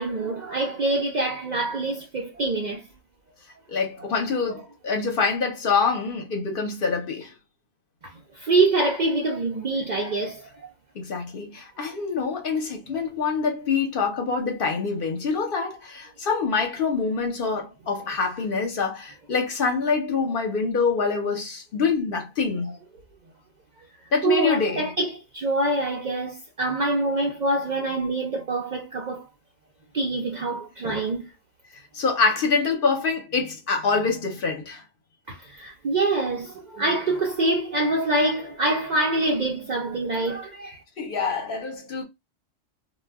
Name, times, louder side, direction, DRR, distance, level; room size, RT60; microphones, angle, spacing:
voice 1, 0.0-2.8 4.0-4.2 8.3-10.6 24.2-29.2 29.9-31.3 35.3-40.8, right 2 dB, 75° right, 0.4 m, -25 dB
voice 2, 3.7-7.3 10.9-22.8 24.1-24.9 31.9-34.8 41.0-42.0, left 5 dB, 55° left, 0.7 m, -25 dB
2.2 x 2.1 x 3.4 m
omnidirectional pair, 1.4 m